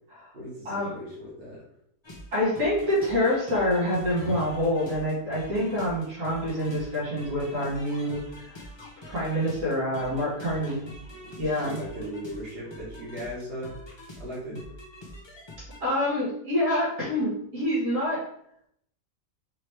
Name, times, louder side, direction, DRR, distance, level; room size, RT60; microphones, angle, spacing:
voice 1, 0.3-1.6 10.4-10.8 11.6-13.8 14.2-14.6, equal, 45° right, -7 dB, 1.9 m, -38 dB
sound 1, 2.0-15.8, left 1 dB, 30° left, 0.5 m, -44 dB
voice 2, 2.3-8.6 9.0-10.8 11.4-11.8 15.8-18.2, left 1 dB, 70° right, -8 dB, 2.2 m, -26 dB
4.9 x 3.0 x 3.2 m, 0.71 s
omnidirectional pair, 1.4 m